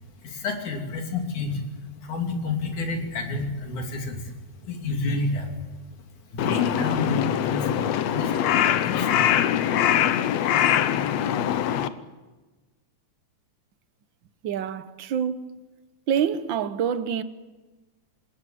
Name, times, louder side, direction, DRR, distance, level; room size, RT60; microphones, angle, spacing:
voice 1, 0.2-1.6 2.0-4.3 4.6-5.5 6.3-7.7 8.0-8.3 8.8-9.4 10.8-10.9, left 3 dB, 85° left, 4.5 m, -29 dB
Crow, 6.4-11.9, left 10 dB, 70° left, 2.0 m, -23 dB
voice 2, 14.4-15.5 16.1-17.2, right 8 dB, 65° right, 1.2 m, -26 dB
26.5 x 20.0 x 7.7 m
omnidirectional pair, 3.4 m